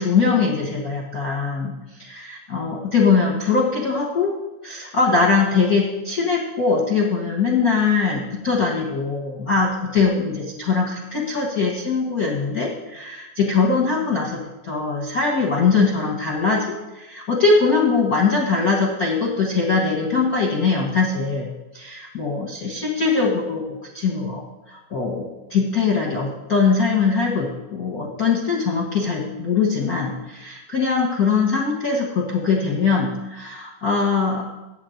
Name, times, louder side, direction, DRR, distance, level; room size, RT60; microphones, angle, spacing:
voice 1, 0.0-4.3 4.6-14.4 14.6-23.6 23.9-24.4 24.7-34.4, left 4 dB, 50° left, -3 dB, 1.1 m, -21 dB
8.8 x 5.8 x 7.8 m, 1.1 s
omnidirectional pair, 3.4 m